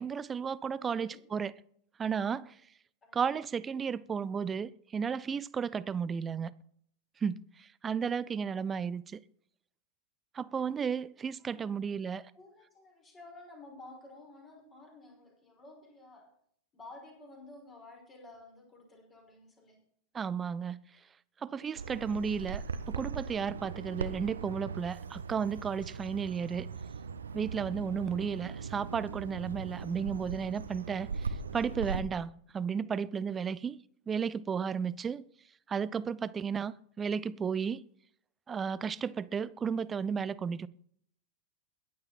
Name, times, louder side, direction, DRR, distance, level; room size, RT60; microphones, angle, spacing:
voice 1, 0.0-1.5 2.0-2.6 3.1-6.5 7.2-9.2 10.3-12.2 20.1-20.8 21.4-26.7 27.3-33.8 34.1-35.2 35.7-37.8 38.5-40.7, right 6 dB, 20° right, 0.6 m, -33 dB
voice 2, 0.9-1.3 3.0-3.3 11.4-11.8 12.3-16.3 16.7-19.8, left 2 dB, 25° left, 5.6 m, -52 dB
Bird vocalization bird call bird song, 21.8-32.0, right 5 dB, 70° right, 1.0 m, -39 dB
21.5 x 8.6 x 4.3 m
figure-of-eight pair, 90°, 0 cm